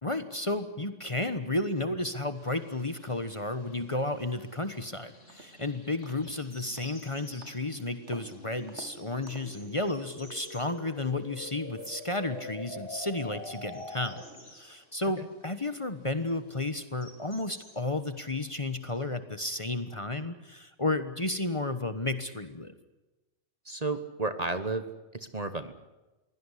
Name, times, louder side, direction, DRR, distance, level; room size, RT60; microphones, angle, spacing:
voice 1, 0.0-14.2 14.6-22.7, left 2 dB, 25° left, 10 dB, 1.2 m, -32 dB
sound 1, 2.3-19.0, left 1 dB, 75° left, 5.6 m, -57 dB
sound 2, 4.6-14.5, left 1 dB, 50° left, 4.2 m, -46 dB
sound 3, 4.8-4.9 5.3-5.6 6.0-6.4 6.8-7.0 7.4-7.6 8.1-8.3 8.7-8.9 9.3-9.6, right 3 dB, 65° right, 2.6 m, -49 dB
voice 2, 23.7-25.7, right 3 dB, 35° right, 11 dB, 1.3 m, -33 dB
23.0 x 17.0 x 9.9 m, 1.1 s
omnidirectional pair, 1.3 m